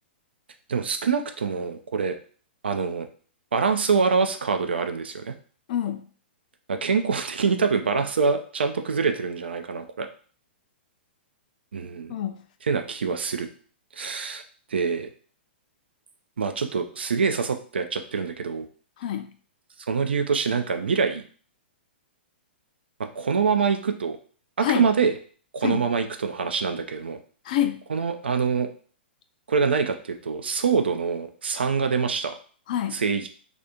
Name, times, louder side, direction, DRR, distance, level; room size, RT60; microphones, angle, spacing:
voice 1, 0.7-2.2 2.6-3.1 3.5-5.4 6.7-10.1 11.7-12.1 12.7-13.5 14.0-14.4 14.7-15.1 16.4-18.7 19.9-21.2 23.2-24.2 24.6-25.1 25.5-27.2 27.9-28.7 29.5-32.3 32.9-33.3, right 5 dB, 70° right, 7 dB, 0.4 m, -25 dB
voice 2, 5.7-6.0 12.1-12.4 19.0-19.3 24.6-24.9 25.6-25.9 27.4-27.8 32.7-33.0, left 10 dB, 45° left, 8 dB, 0.3 m, -27 dB
2.5 x 2.4 x 2.8 m, 0.43 s
figure-of-eight pair, 110°, 6 cm